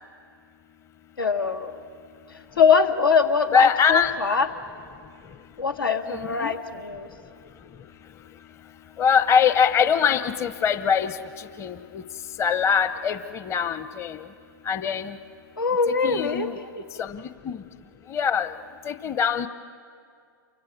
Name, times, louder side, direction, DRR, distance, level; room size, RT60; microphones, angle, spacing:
voice 1, 1.2-1.8 2.6-4.5 5.6-7.1 15.6-17.0, left 5 dB, 90° left, 8 dB, 1.7 m, -23 dB
voice 2, 3.5-4.1 6.1-6.5 9.0-11.1 11.6-12.0 12.4-14.2 14.7-15.1 16.0-16.5 17.0-17.6 18.1-18.5 18.9-19.5, left 7 dB, 25° left, 11 dB, 0.9 m, -22 dB
29.0 x 24.0 x 7.4 m, 2.3 s
hypercardioid pair, 115°, 11 cm